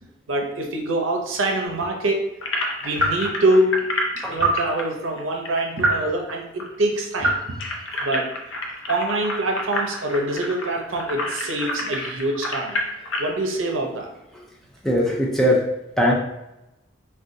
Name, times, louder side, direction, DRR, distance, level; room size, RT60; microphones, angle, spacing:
voice 1, 0.3-2.3 2.8-3.8 4.1-7.4 8.0-8.3 8.9-12.8 13.2-14.1, right 1 dB, 85° right, 2 dB, 0.6 m, -24 dB
sound 1, 1.6-1.9 2.9-3.3 4.4-4.6 5.8-6.1 7.2-7.5, right 2 dB, 15° right, 0.9 m, -23 dB
sound 2, 2.4-6.3 6.6-6.7 7.0-13.3, left 1 dB, 85° left, 0.5 m, -29 dB
voice 2, 14.8-15.7 16.0-16.1, equal, ahead, -3 dB, 0.4 m, -19 dB
2.5 x 2.3 x 3.6 m, 0.93 s
head